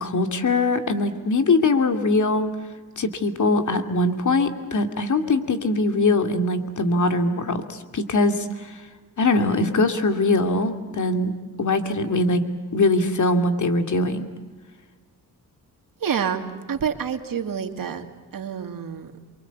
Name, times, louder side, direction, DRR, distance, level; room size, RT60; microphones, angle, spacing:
voice 1, 0.0-2.5 3.0-8.5 9.2-11.3 11.6-12.4 12.7-14.3, left 2 dB, 50° left, 7 dB, 2.6 m, -22 dB
voice 2, 16.0-18.0 18.3-19.1, right 7 dB, 60° right, 6 dB, 2.5 m, -28 dB
28.0 x 24.0 x 8.3 m, 1.3 s
cardioid pair, 90°, 37 cm